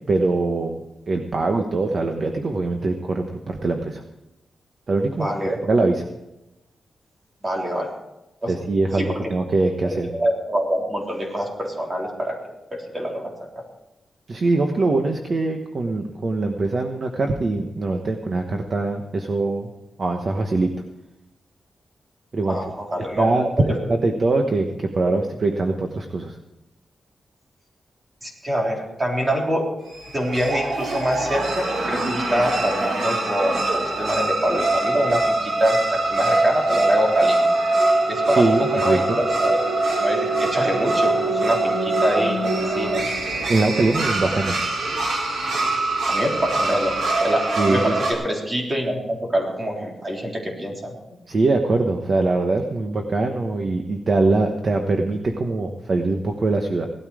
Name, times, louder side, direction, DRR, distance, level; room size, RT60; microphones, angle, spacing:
voice 1, 0.1-0.8 1.1-4.0 4.9-6.1 8.5-10.1 14.3-19.7 20.0-20.7 22.3-22.6 23.2-26.4 38.4-39.2 43.5-44.6 47.6-48.0 51.3-56.9, right 3 dB, 40° right, 4 dB, 1.1 m, -22 dB
voice 2, 5.2-5.5 7.4-7.9 8.4-8.6 9.0-9.2 9.8-12.4 12.7-13.6 22.5-23.3 23.7-24.0 28.2-29.7 30.1-37.5 38.1-39.6 40.0-43.1 46.1-50.9, equal, 20° right, -1 dB, 3.6 m, -25 dB
sound 1, 29.9-48.1, right 2 dB, 90° right, 4.1 m, -23 dB
17.5 x 13.0 x 4.9 m, 0.95 s
wide cardioid pair, 170°, 0 cm